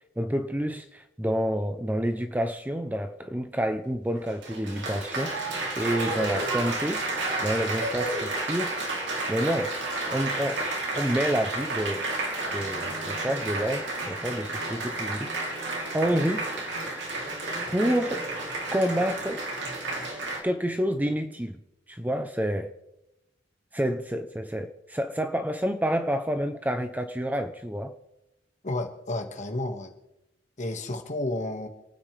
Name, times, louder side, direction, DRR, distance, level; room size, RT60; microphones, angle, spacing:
voice 1, 0.2-7.0 7.4-8.7 9.3-9.7 10.1-10.7 10.9-12.0 12.5-15.3 15.9-16.7 17.7-18.2 18.7-19.4 20.4-21.6 21.9-22.7 23.7-27.9, equal, 10° right, 8 dB, 0.7 m, -28 dB
Applause, 4.2-20.4, right 2 dB, 65° right, 3.2 m, -31 dB
voice 2, 28.6-29.9 30.6-31.7, left 1 dB, 40° left, 5 dB, 1.8 m, -31 dB
29.0 x 9.6 x 3.4 m, 0.90 s
head